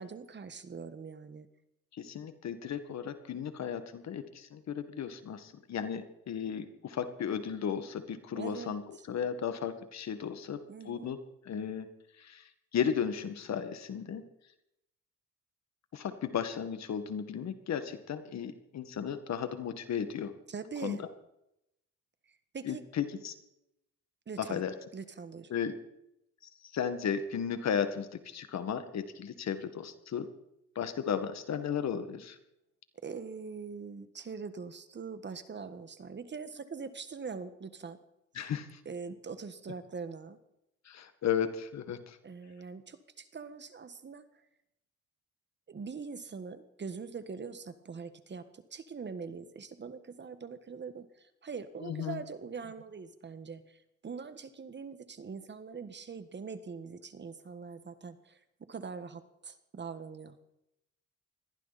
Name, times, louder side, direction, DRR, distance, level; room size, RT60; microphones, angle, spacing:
voice 1, 0.0-1.5 8.3-8.8 10.7-11.2 20.5-21.0 22.5-22.8 24.3-24.6 24.9-25.5 33.0-38.0 38.8-40.4 42.2-44.3 45.7-58.4 58.7-60.3, right 5 dB, 35° right, 11 dB, 1.5 m, -43 dB
voice 2, 1.9-8.8 9.1-10.6 10.9-11.2 11.5-11.9 12.2-12.4 12.7-14.2 15.9-20.3 20.8-21.0 22.6-23.3 24.4-24.7 25.5-25.7 26.6-30.3 30.8-32.4 38.4-38.8 40.9-42.2 51.8-52.2, left 8 dB, 60° left, 9 dB, 1.9 m, -35 dB
21.0 x 15.0 x 4.3 m, 0.83 s
cardioid pair, 90°, 30 cm